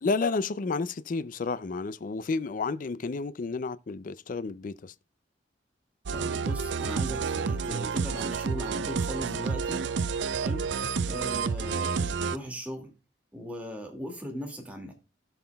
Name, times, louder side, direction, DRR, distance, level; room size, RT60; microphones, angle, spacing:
voice 1, 0.0-4.9, left 4 dB, 50° left, 0.4 m, -31 dB
voice 2, 6.1-9.9 10.3-10.7 11.1-12.9 13.3-14.9, equal, 10° right, 2.0 m, -38 dB
sound 1, 6.1-12.4, right 5 dB, 75° right, 0.5 m, -29 dB
16.5 x 5.7 x 2.3 m
head